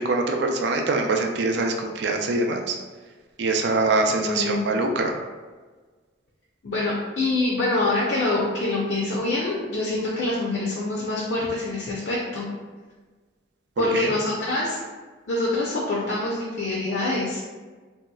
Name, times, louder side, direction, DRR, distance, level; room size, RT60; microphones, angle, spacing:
voice 1, 0.0-2.8 3.4-5.2 14.0-14.1, right 3 dB, 60° right, 3 dB, 0.3 m, -24 dB
voice 2, 4.1-4.7 6.6-12.5 13.8-14.8 15.3-17.4, left 2 dB, 60° left, -4 dB, 0.5 m, -25 dB
3.2 x 2.8 x 2.3 m, 1.4 s
head